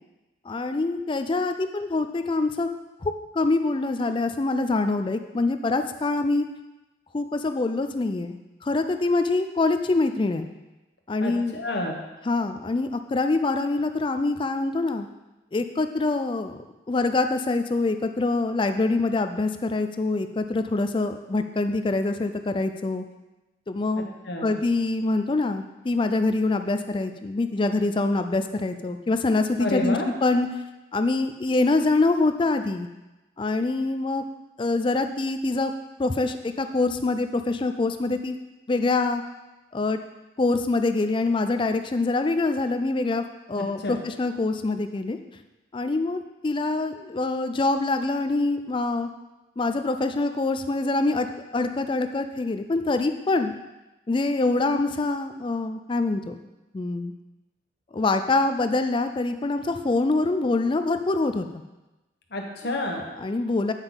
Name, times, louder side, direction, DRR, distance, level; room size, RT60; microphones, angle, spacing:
voice 1, 0.5-2.7 3.0-6.5 7.1-10.5 11.1-11.6 12.3-15.1 15.5-16.6 16.9-23.0 23.7-24.1 24.4-30.0 30.2-30.5 30.9-32.9 33.4-34.2 34.6-35.7 36.0-38.4 38.7-39.2 39.7-40.0 40.4-45.2 45.7-49.1 49.6-51.3 51.5-53.5 54.1-56.3 56.7-57.1 57.9-61.6 63.2-63.7, left 3 dB, 25° left, 8 dB, 0.4 m, -25 dB
voice 2, 11.2-12.0 24.0-24.6 29.6-30.1 43.6-44.0 62.3-63.0, left 1 dB, 55° left, 1 dB, 1.2 m, -30 dB
8.9 x 5.5 x 3.9 m, 1.1 s
head